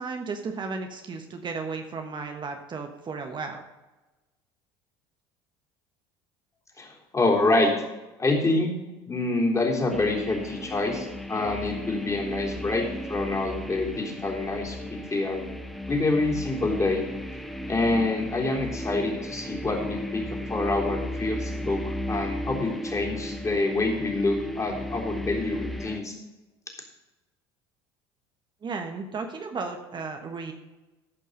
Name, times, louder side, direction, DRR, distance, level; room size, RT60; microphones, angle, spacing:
voice 1, 0.0-3.6 28.6-30.5, right 4 dB, 35° right, 5 dB, 1.3 m, -34 dB
voice 2, 6.8-7.7 8.2-8.7 9.1-15.4 15.9-17.0 17.7-20.2 20.5-26.2, left 2 dB, 20° left, 0 dB, 3.4 m, -26 dB
sound 1, 9.9-26.0, left 1 dB, ahead, 1.1 m, -35 dB
14.0 x 5.4 x 6.5 m, 1.1 s
hypercardioid pair, 75°, 14 cm